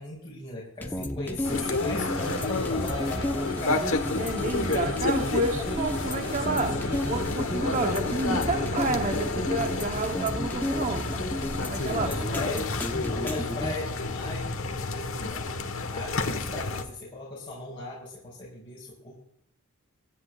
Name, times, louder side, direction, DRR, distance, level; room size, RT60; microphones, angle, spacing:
voice 1, 0.0-3.9 11.9-12.7 13.1-15.6 15.9-19.2, left 2 dB, 25° left, 5.2 m, -37 dB
sound 1, 0.8-13.7, left 1 dB, 10° left, 0.8 m, -33 dB
sound 2, 1.4-16.8, left 3 dB, 70° left, 1.4 m, -30 dB
sound 3, 1.5-7.5, right 2 dB, 70° right, 5.7 m, -45 dB
voice 2, 4.2-11.1 11.6-12.6, right 2 dB, 35° right, 0.9 m, -30 dB
26.0 x 10.5 x 2.4 m
head